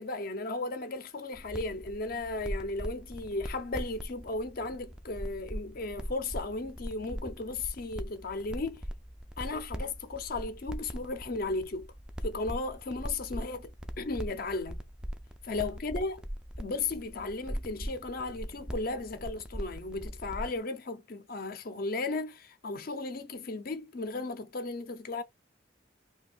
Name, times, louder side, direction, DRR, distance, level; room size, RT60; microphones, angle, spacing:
voice 1, 0.0-8.8 9.4-11.9 12.2-13.7 14.0-14.8 15.4-16.2 16.6-25.2, left 3 dB, 50° left, 0.6 m, -35 dB
sound 1, 1.3-20.6, equal, 5° right, 0.3 m, -41 dB
2.5 x 2.3 x 3.8 m
head